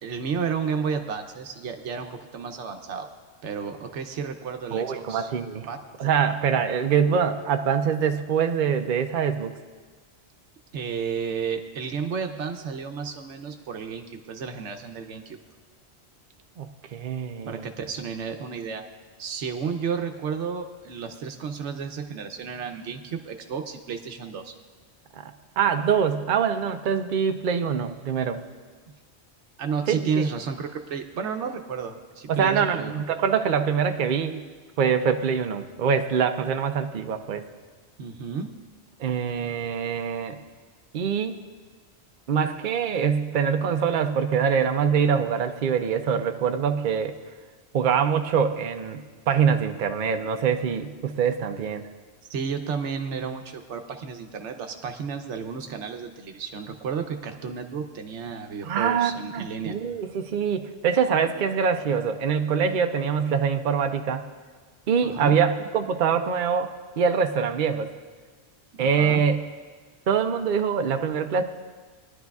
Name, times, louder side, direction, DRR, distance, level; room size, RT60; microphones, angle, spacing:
voice 1, 0.0-3.1 3.4-5.3 5.7-5.8 10.7-15.4 17.4-18.8 19.2-24.5 29.6-33.0 38.0-38.5 52.3-59.8 65.0-65.4 68.7-69.2, right 6 dB, 90° right, 5 dB, 1.0 m, -32 dB
voice 2, 4.7-5.7 6.0-9.5 16.6-17.7 25.1-28.4 29.9-30.3 32.3-34.4 34.8-37.4 39.0-40.4 40.9-41.4 42.3-47.2 47.7-51.9 58.6-64.3 64.9-67.9 68.8-69.4 70.1-71.4, right 7 dB, 55° right, 7 dB, 0.7 m, -24 dB
20.0 x 11.0 x 2.3 m, 1.4 s
omnidirectional pair, 1.1 m